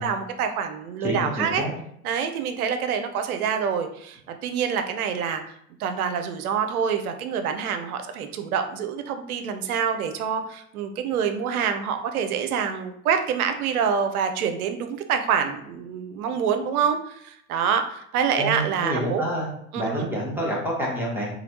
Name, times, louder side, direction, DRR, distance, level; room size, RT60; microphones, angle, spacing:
voice 1, 0.0-1.6 2.0-5.4 5.8-19.2 19.7-20.1, right 7 dB, 75° right, 7 dB, 0.6 m, -26 dB
voice 2, 1.0-1.7 18.4-19.5 19.7-21.3, equal, 5° right, -5 dB, 1.0 m, -28 dB
3.1 x 2.3 x 2.8 m, 0.70 s
hypercardioid pair, 80°, 44 cm